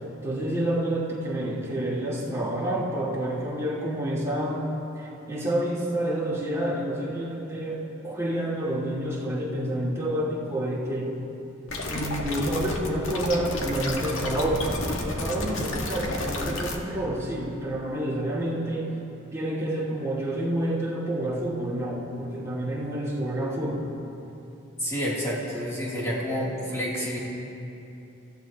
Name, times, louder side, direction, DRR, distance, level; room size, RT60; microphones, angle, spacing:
voice 1, 0.2-11.2 11.9-19.0 19.3-23.9, right 1 dB, 15° right, -6 dB, 2.5 m, -29 dB
sound 1, 11.7-16.8, left 2 dB, 80° left, 1.8 m, -31 dB
voice 2, 24.8-27.2, equal, 15° left, -7 dB, 3.2 m, -29 dB
29.0 x 15.5 x 3.1 m, 2.9 s
head